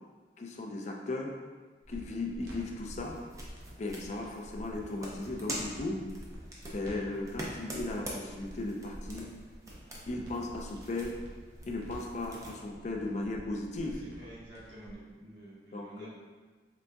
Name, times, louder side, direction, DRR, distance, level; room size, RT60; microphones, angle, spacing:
voice 1, 0.4-1.3 1.9-3.2 3.8-6.0 6.7-9.3 10.1-11.1 11.7-14.0 15.7-16.1, left 2 dB, 40° left, 1 dB, 0.4 m, -36 dB
sound 1, 1.8-14.9, equal, 60° right, 0.8 m, -48 dB
sound 2, 2.9-12.6, right 1 dB, 20° right, 0.5 m, -45 dB
voice 2, 13.8-16.1, right 1 dB, 90° right, -8 dB, 1.3 m, -49 dB
3.9 x 3.4 x 2.2 m, 1.4 s
head